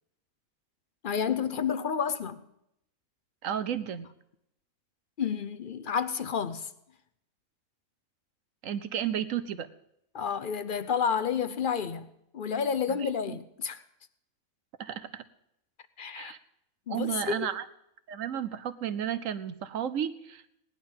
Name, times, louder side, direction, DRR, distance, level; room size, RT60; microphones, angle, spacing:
voice 1, 1.0-2.4 5.2-6.7 10.1-13.8 16.0-16.3 16.9-17.5, left 7 dB, 50° left, 0.6 m, -30 dB
voice 2, 3.4-4.1 8.6-9.7 12.9-13.4 14.8-15.2 16.1-16.4 16.9-17.6 18.1-20.6, right 9 dB, 65° right, 1.1 m, -33 dB
17.5 x 11.0 x 5.4 m
omnidirectional pair, 1.5 m